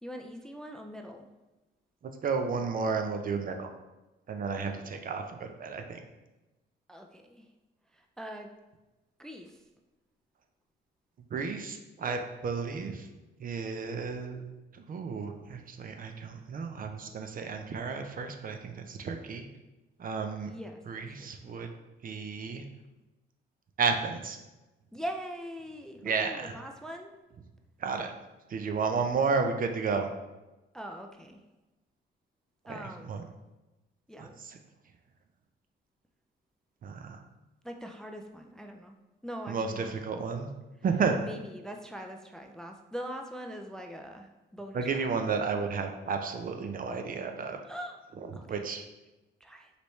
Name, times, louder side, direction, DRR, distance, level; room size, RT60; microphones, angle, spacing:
voice 1, 0.0-1.3 4.6-4.7 6.9-7.5 7.9-8.5 9.2-9.6 20.5-21.5 24.9-27.1 30.7-31.4 32.7-33.3 34.1-34.4 37.6-38.9 39.2-40.0 41.2-45.1 47.6-48.0 48.3-48.6 49.4-49.7, equal, 5° left, 4 dB, 0.4 m, -42 dB
voice 2, 2.2-3.7 4.3-6.0 11.3-13.1 13.4-19.4 20.0-20.5 20.9-21.7 22.0-22.6 23.8-24.4 26.0-26.5 27.8-28.1 28.5-30.1 32.7-33.2 34.2-34.6 36.8-37.2 39.5-40.5 40.8-41.2 44.7-47.6 48.5-48.8, right 5 dB, 45° right, 5 dB, 0.5 m, -32 dB
5.0 x 3.2 x 3.1 m, 1.1 s
cardioid pair, 90°, 20 cm